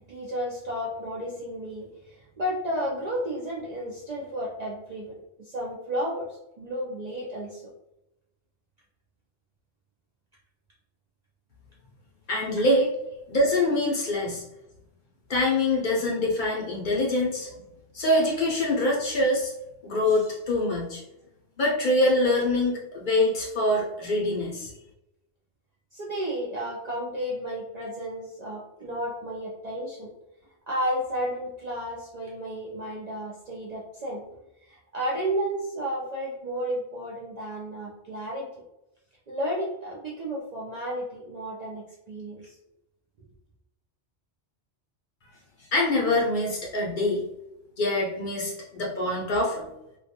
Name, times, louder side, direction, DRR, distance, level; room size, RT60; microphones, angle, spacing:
voice 1, 0.1-5.1 5.4-7.7 25.9-30.1 30.7-34.2 34.6-38.5 39.3-42.5, equal, 60° right, -4 dB, 0.4 m, -32 dB
voice 2, 12.3-12.9 13.3-14.4 15.3-17.5 17.9-19.5 19.8-21.0 21.6-24.7 45.7-47.2 47.8-49.7, left 1 dB, 60° left, -3 dB, 0.6 m, -24 dB
2.3 x 2.2 x 2.7 m, 0.90 s
omnidirectional pair, 1.1 m